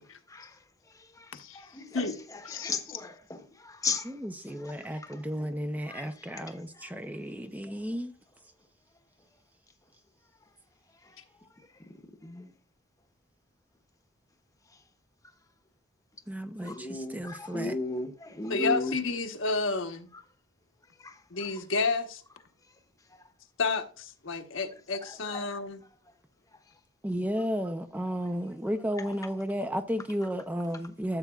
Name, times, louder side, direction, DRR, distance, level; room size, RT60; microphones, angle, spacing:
voice 1, 1.5-2.0 2.5-4.1 4.5-4.6 5.1-5.2 5.9-6.1 6.3-6.4 12.2-12.5 16.6-18.9 21.0-21.1 25.3-25.4, left 3 dB, 15° left, 1.0 m, -35 dB
voice 2, 2.5-2.8 18.5-20.1 21.3-22.2 23.6-25.8, left 4 dB, 70° left, 1.1 m, -30 dB
voice 3, 4.0-8.1 16.3-17.8 27.0-31.2, equal, 10° right, 0.5 m, -33 dB
13.5 x 7.9 x 2.4 m
head